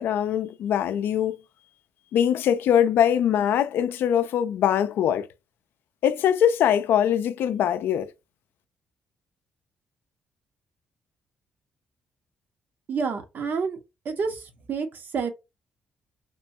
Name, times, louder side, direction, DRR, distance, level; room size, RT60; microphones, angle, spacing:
voice 1, 0.0-1.4 2.1-5.3 6.0-8.1, left 9 dB, 75° left, 0.3 m, -22 dB
voice 2, 12.9-13.8 14.0-14.4 14.7-15.3, right 5 dB, 60° right, 0.8 m, -28 dB
3.0 x 2.2 x 2.6 m
cardioid pair, 80°, 4 cm